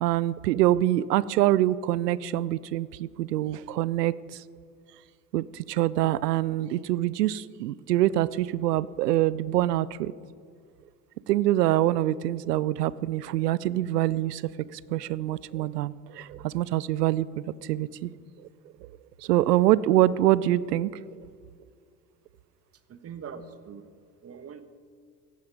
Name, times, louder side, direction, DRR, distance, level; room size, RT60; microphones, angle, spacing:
voice 1, 0.0-4.4 5.3-10.1 11.3-18.1 18.8-18.9 19.2-20.9, right 14 dB, 75° right, 20 dB, 0.7 m, -25 dB
voice 2, 22.9-23.9 24.2-24.6, right 6 dB, 30° right, 11 dB, 1.4 m, -42 dB
17.5 x 14.5 x 4.7 m, 2.2 s
hypercardioid pair, 75°, 49 cm